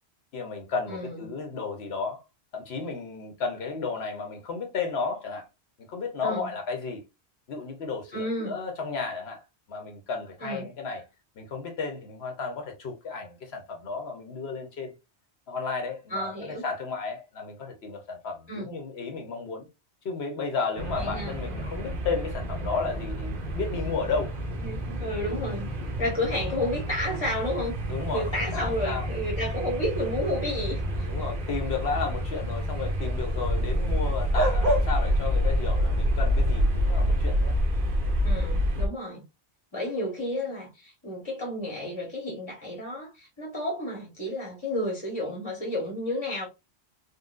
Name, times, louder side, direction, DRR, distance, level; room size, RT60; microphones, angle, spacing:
voice 1, 0.3-2.2 2.5-5.5 5.9-7.0 7.5-9.4 9.7-11.0 11.4-14.9 15.5-19.7 20.0-24.4 27.9-29.1 31.1-37.6, left 4 dB, 70° left, 1.0 m, -33 dB
voice 2, 0.9-1.3 6.2-6.5 8.1-8.6 10.4-10.7 16.1-16.6 18.5-18.7 21.0-21.3 24.6-25.7 26.0-27.8 28.1-31.1 38.2-39.2 39.7-46.5, left 1 dB, 25° left, 1.0 m, -31 dB
sound 1, 20.8-38.9, equal, 55° right, 0.8 m, -28 dB
3.8 x 2.3 x 2.3 m
omnidirectional pair, 1.1 m